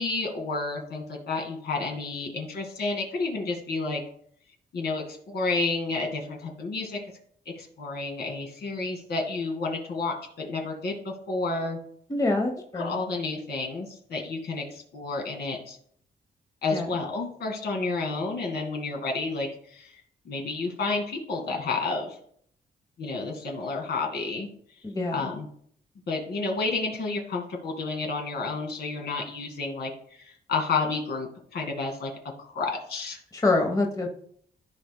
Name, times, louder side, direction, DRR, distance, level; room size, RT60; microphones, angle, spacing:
voice 1, 0.0-4.0 4.7-7.0 7.5-11.8 12.8-15.8 16.6-20.0 20.3-22.2 23.0-24.5 25.1-25.5 26.1-32.1 32.4-33.2, left 3 dB, 70° left, 1 dB, 2.1 m, -30 dB
voice 2, 12.1-13.0 16.7-16.9 24.8-25.3 33.3-34.1, left 2 dB, 20° left, 3 dB, 1.0 m, -26 dB
14.5 x 5.1 x 2.2 m, 0.62 s
wide cardioid pair, 135°, 18 cm